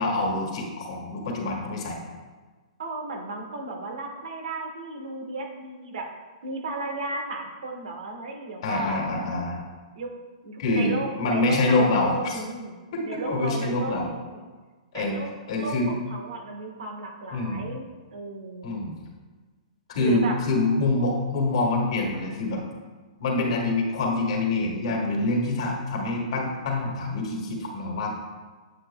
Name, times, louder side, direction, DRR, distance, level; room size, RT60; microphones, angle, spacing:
voice 1, 0.0-2.0 8.6-9.6 10.6-10.9 11.2-12.4 12.9-14.1 14.9-15.2 15.5-15.9 17.3-17.6 18.6-18.9 19.9-22.6 23.2-28.2, left 2 dB, 55° left, 0 dB, 1.6 m, -26 dB
voice 2, 2.8-6.1 6.4-9.2 9.9-10.1 10.4-14.4 14.9-15.3 15.5-17.8 18.1-18.7 20.0-20.3, right 2 dB, 80° right, 2 dB, 1.5 m, -34 dB
8.0 x 7.9 x 2.3 m, 1.3 s
hypercardioid pair, 160°, 4 cm